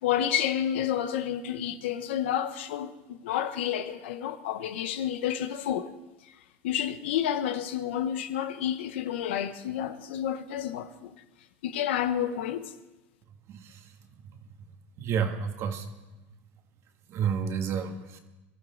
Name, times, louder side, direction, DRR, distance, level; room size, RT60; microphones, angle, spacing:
voice 1, 0.0-5.9 6.2-6.3 6.6-11.2 11.6-12.7, left 10 dB, 85° left, 0.9 m, -30 dB
voice 2, 13.5-13.9 14.2-14.4 15.0-15.9 17.1-18.2, right 7 dB, 50° right, 1.7 m, -30 dB
22.0 x 14.0 x 3.9 m
supercardioid pair, 110°, 6 cm